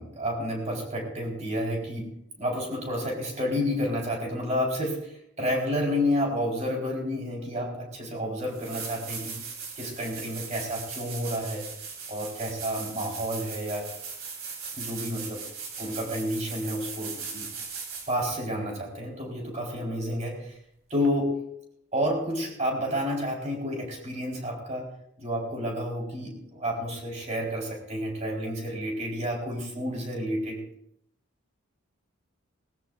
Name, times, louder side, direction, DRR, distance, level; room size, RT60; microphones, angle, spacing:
voice 1, 0.0-9.4 9.8-11.6 12.1-13.9 14.8-15.4 15.8-17.5 18.1-20.6 20.9-21.6 21.9-24.9 25.2-30.6, equal, 35° right, -2 dB, 4.3 m, -30 dB
sound 1, 8.5-18.3 21.0-21.1, right 5 dB, 90° right, 3.7 m, -39 dB
20.0 x 19.0 x 2.5 m, 0.74 s
head